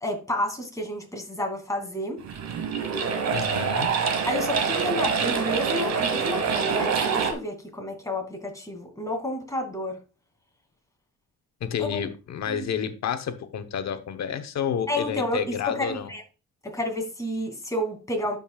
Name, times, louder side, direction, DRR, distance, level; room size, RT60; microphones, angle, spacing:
voice 1, 0.0-2.2 4.2-10.0 11.8-12.0 12.5-12.7 14.9-16.2 16.6-18.4, left 1 dB, 10° left, 2.6 m, -30 dB
sound 1, 2.2-7.3, right 6 dB, 65° right, 1.4 m, -25 dB
voice 2, 3.3-3.9 11.6-16.1, left 8 dB, 65° left, 1.0 m, -30 dB
12.0 x 5.4 x 2.4 m
cardioid pair, 90°, 30 cm